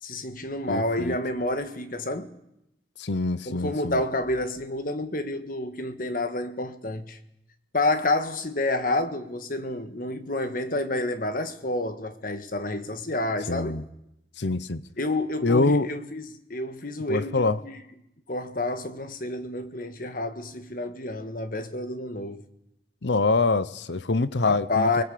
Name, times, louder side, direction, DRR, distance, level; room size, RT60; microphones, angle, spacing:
voice 1, 0.0-2.4 3.4-7.2 7.7-13.8 15.0-17.8 18.3-22.4 24.4-25.0, left 2 dB, 50° left, 1.6 m, -29 dB
voice 2, 0.7-1.2 3.0-4.0 13.5-13.8 14.4-14.8 15.4-15.9 17.1-17.6 23.0-25.0, left 3 dB, 80° left, 0.9 m, -25 dB
24.0 x 21.0 x 8.5 m
head